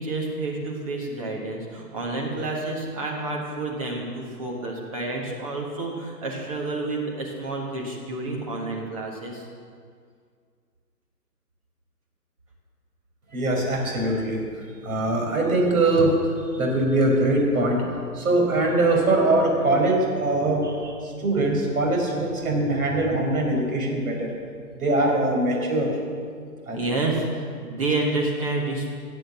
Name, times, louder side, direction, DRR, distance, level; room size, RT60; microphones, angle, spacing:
voice 1, 0.0-9.5 26.7-29.0, right 2 dB, 20° right, -1 dB, 1.4 m, -29 dB
voice 2, 13.3-14.4 14.8-16.1 16.6-17.8 18.1-24.3 24.8-25.9 26.7-26.8, right 2 dB, 60° right, 0 dB, 4.9 m, -22 dB
18.0 x 7.7 x 7.4 m, 2.1 s
hypercardioid pair, 160°, 49 cm